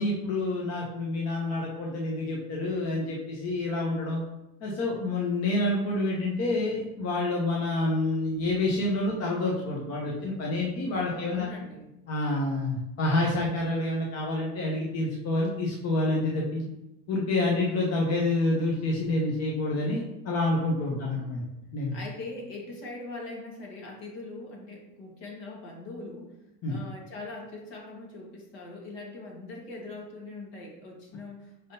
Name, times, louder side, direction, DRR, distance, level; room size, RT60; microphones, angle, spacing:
voice 1, 0.0-4.2 4.6-11.5 12.1-16.7 17.1-21.4 21.7-21.9 26.6-26.8, left 2 dB, 30° left, -2 dB, 0.8 m, -28 dB
voice 2, 11.0-11.9 21.0-21.5 21.9-26.3 26.7-31.7, left 2 dB, 55° left, -1 dB, 1.6 m, -42 dB
5.4 x 3.4 x 2.7 m, 0.91 s
supercardioid pair, 130°, 50 cm